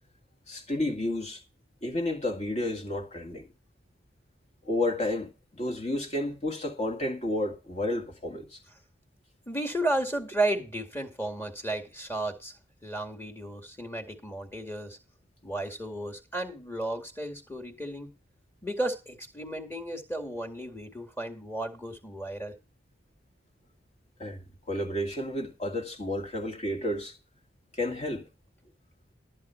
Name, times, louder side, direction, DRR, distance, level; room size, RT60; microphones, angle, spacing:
voice 1, 0.5-1.4 1.8-3.4 4.6-8.6 24.2-24.4 24.7-27.2 27.7-28.3, left 1 dB, 35° left, 2.0 m, -31 dB
voice 2, 9.5-12.5 12.8-15.0 15.4-18.1 18.6-22.5, right 1 dB, 10° left, 2.0 m, -33 dB
13.0 x 8.2 x 4.5 m
head